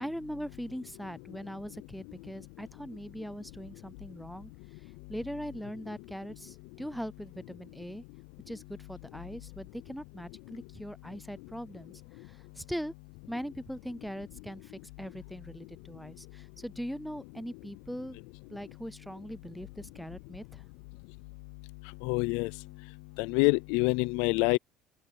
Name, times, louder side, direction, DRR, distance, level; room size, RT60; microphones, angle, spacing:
voice 1, 0.0-4.5 5.1-8.0 8.5-11.9 12.3-12.9 13.3-18.2 18.5-20.6, equal, ahead, 0.4 m, -41 dB
voice 2, 22.0-22.5 23.2-24.6, left 27 dB, 85° left, 0.4 m, -26 dB
open air
cardioid pair, 180°, 0 cm